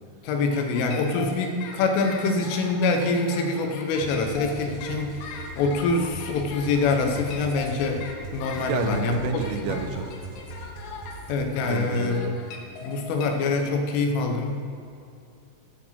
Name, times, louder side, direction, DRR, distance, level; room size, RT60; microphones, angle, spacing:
voice 1, 0.2-5.2 5.6-8.1 8.3-9.8 11.3-12.2 12.8-14.6, left 3 dB, 85° left, 4 dB, 3.7 m, -25 dB
sound 1, 0.5-13.3, left 5 dB, 65° left, 2.8 m, -40 dB
sound 2, 4.0-11.5, right 3 dB, 65° right, 2.4 m, -40 dB
voice 2, 8.6-10.1 11.6-12.4, right 7 dB, 90° right, 7 dB, 3.4 m, -30 dB
15.0 x 8.8 x 5.8 m, 2.5 s
omnidirectional pair, 5.7 m